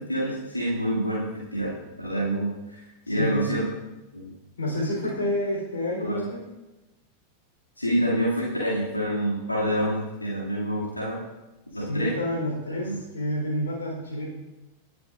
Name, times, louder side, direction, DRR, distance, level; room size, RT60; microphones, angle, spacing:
voice 1, 0.0-3.6 4.1-4.3 6.0-6.2 7.8-11.2 11.7-12.2 12.8-13.0, equal, 85° left, -6 dB, 2.4 m, -27 dB
voice 2, 3.1-3.5 4.6-6.4 11.7-14.3, left 1 dB, 70° left, -1 dB, 3.8 m, -29 dB
19.0 x 9.4 x 2.5 m, 1.0 s
figure-of-eight pair, 90°, 0 cm